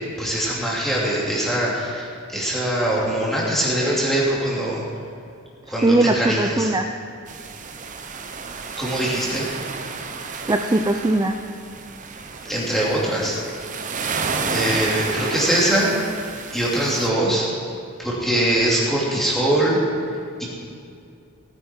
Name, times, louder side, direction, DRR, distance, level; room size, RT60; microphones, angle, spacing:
voice 1, 0.2-4.8 5.7-6.7 8.8-9.5 12.4-13.4 14.5-15.9 16.5-17.5 18.0-19.8 20.4-20.5, right 1 dB, ahead, -6 dB, 2.8 m, -22 dB
voice 2, 5.8-6.8 10.5-11.4, right 2 dB, 20° right, 4 dB, 0.5 m, -19 dB
sound 1, 7.3-17.1, right 4 dB, 35° right, 0.8 m, -31 dB
18.0 x 9.4 x 4.5 m, 2.4 s
head